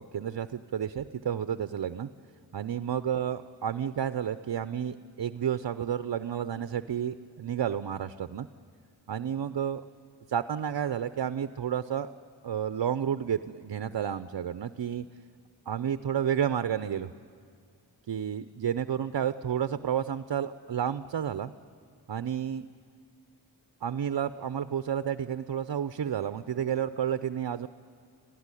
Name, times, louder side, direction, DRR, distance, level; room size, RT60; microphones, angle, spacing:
voice 1, 0.0-2.1 2.5-8.5 9.1-9.8 10.3-12.1 12.4-15.0 15.7-17.1 18.1-21.5 22.1-22.7 23.8-27.7, right 9 dB, 55° right, 12 dB, 0.7 m, -31 dB
26.0 x 16.5 x 9.9 m, 2.3 s
cardioid pair, 50°, 45 cm